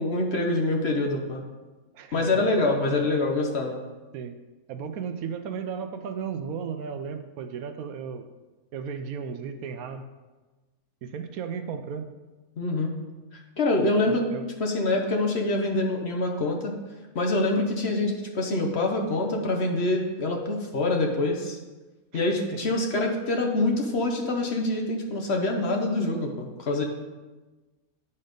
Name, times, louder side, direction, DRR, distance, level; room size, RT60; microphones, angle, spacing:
voice 1, 0.0-1.4 2.1-3.8 12.6-12.9 13.6-14.2 14.6-16.7 17.1-21.6 22.1-26.8, left 2 dB, 50° left, 2 dB, 1.0 m, -25 dB
voice 2, 1.9-2.6 2.8-3.1 4.1-4.3 4.7-8.3 8.7-10.0 11.0-12.1 14.1-14.5 22.1-22.2 22.5-22.7, right 6 dB, 75° right, 9 dB, 1.0 m, -35 dB
9.7 x 4.2 x 5.1 m, 1.2 s
omnidirectional pair, 1.6 m